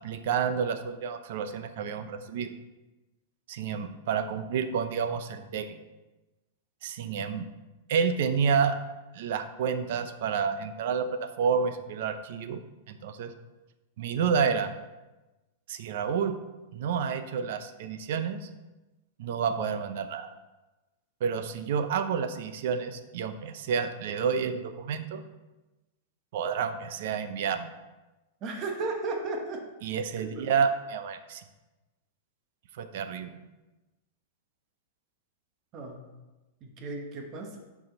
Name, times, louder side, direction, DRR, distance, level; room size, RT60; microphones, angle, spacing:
voice 1, 0.0-2.5 3.5-5.8 6.8-7.4 7.9-8.8 9.1-12.6 12.9-13.3 14.0-14.7 15.7-16.4 16.7-18.5 19.2-20.3 21.2-25.2 26.3-27.7 29.8-31.4 32.7-33.4, right 6 dB, 50° right, 10 dB, 0.6 m, -29 dB
voice 2, 28.4-29.6 30.2-30.4 35.7-36.0 36.6-37.6, right 3 dB, 25° right, 2 dB, 1.0 m, -34 dB
9.6 x 5.0 x 3.9 m, 1.1 s
supercardioid pair, 175°, 0 cm